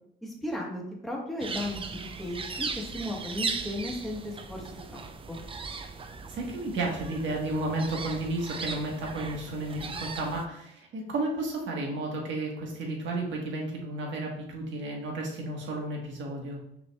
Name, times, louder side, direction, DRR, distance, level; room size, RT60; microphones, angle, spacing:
voice 1, 0.2-5.4, left 1 dB, ahead, -2 dB, 1.2 m, -36 dB
sound 1, 1.4-10.5, right 4 dB, 25° right, 0.4 m, -38 dB
voice 2, 6.3-16.6, right 2 dB, 70° right, 0 dB, 1.3 m, -32 dB
5.8 x 3.1 x 2.3 m, 0.76 s
cardioid pair, 90°, 20 cm